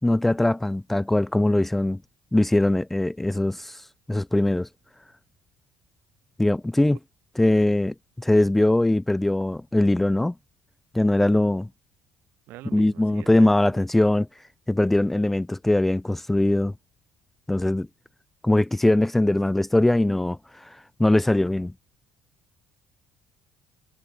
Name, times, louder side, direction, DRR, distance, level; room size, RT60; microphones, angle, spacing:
voice 1, 0.0-2.0 2.3-3.8 4.1-4.7 6.4-7.0 7.4-10.3 10.9-11.7 12.7-14.3 14.7-16.7 17.5-17.9 18.4-21.7, left 1 dB, 5° left, 0.4 m, -21 dB
voice 2, 12.5-13.7, right 17 dB, 75° right, 4.2 m, -44 dB
cardioid pair, 160°, 3 cm